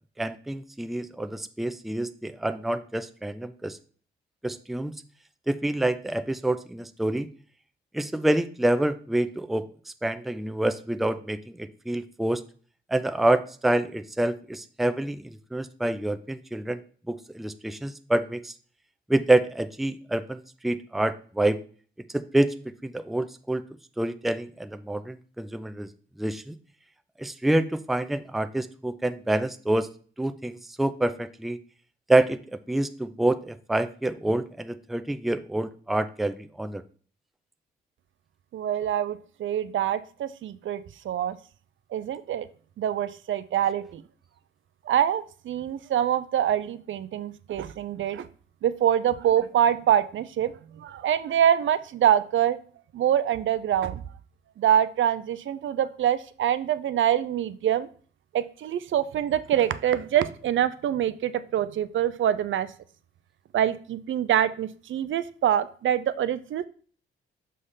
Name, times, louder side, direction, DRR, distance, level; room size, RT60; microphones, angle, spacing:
voice 1, 0.2-3.8 4.4-4.9 5.5-7.3 7.9-9.7 10.0-12.4 12.9-16.8 17.1-18.5 19.1-21.6 22.1-22.5 22.8-23.6 24.0-25.9 26.2-26.6 27.2-29.9 30.2-31.6 32.1-36.8, right 1 dB, ahead, 10 dB, 0.4 m, -27 dB
voice 2, 38.5-41.4 41.9-42.5 42.8-44.0 44.9-48.3 48.6-52.6 52.9-54.0 54.6-57.9 58.3-62.7 63.5-66.7, right 10 dB, 65° right, 14 dB, 0.5 m, -25 dB
6.5 x 3.2 x 5.6 m, 0.43 s
cardioid pair, 90°, 21 cm